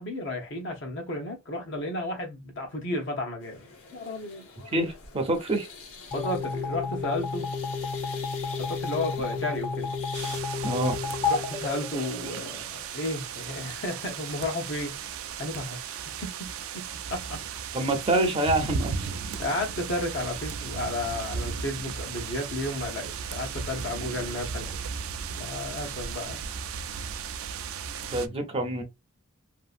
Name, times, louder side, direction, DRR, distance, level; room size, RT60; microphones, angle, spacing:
voice 1, 0.0-4.5 6.1-7.5 8.6-9.9 11.3-15.0 15.4-17.4 19.4-25.0 25.4-26.4, left 1 dB, 60° left, 0.9 m, -33 dB
sound 1, 3.4-10.4, left 4 dB, 90° left, 0.9 m, -45 dB
voice 2, 4.7-5.7 10.6-11.0 17.7-19.1 28.1-28.8, right 1 dB, 30° right, 0.6 m, -26 dB
sound 2, 6.1-12.6, left 4 dB, 25° left, 0.3 m, -31 dB
sound 3, 10.1-28.3, right 6 dB, 80° right, 0.4 m, -36 dB
2.7 x 2.6 x 2.4 m
head